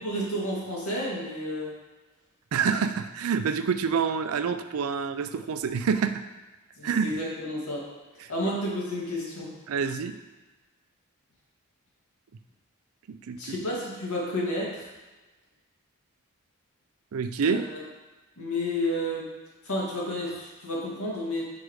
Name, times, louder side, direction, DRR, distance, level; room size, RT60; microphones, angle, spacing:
voice 1, 0.0-1.7 6.8-7.8 8.3-9.5 13.4-14.9 17.4-17.8 18.4-19.2 19.7-21.4, left 1 dB, 90° left, -4 dB, 1.9 m, -31 dB
voice 2, 2.5-6.2 6.8-7.1 9.7-10.2 13.1-13.6 17.1-17.6, right 6 dB, 75° right, 10 dB, 0.4 m, -27 dB
5.3 x 4.9 x 4.7 m, 1.2 s
head